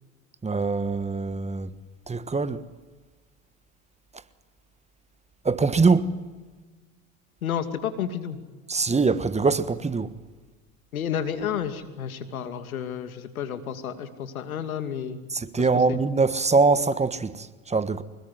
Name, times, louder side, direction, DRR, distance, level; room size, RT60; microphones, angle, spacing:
voice 1, 0.4-1.7 2.1-2.6 5.4-6.1 8.7-10.1 15.3-18.0, right 4 dB, 15° right, 1.4 m, -23 dB
voice 2, 7.4-8.4 10.9-15.3 15.6-16.0, left 8 dB, 90° left, 2.7 m, -31 dB
25.5 x 21.5 x 9.6 m
hypercardioid pair, 85°, 41 cm